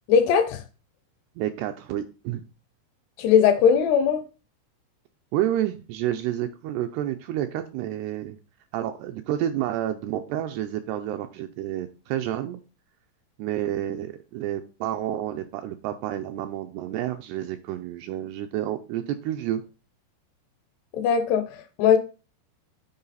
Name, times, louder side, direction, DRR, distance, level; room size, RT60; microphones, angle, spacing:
voice 1, 0.1-0.6 3.2-4.2 20.9-22.0, left 7 dB, 80° left, 2.6 m, -19 dB
voice 2, 1.4-2.4 5.3-8.4 8.7-12.6 13.4-19.6, right 12 dB, 85° right, 2.4 m, -29 dB
9.5 x 4.7 x 4.0 m
omnidirectional pair, 5.1 m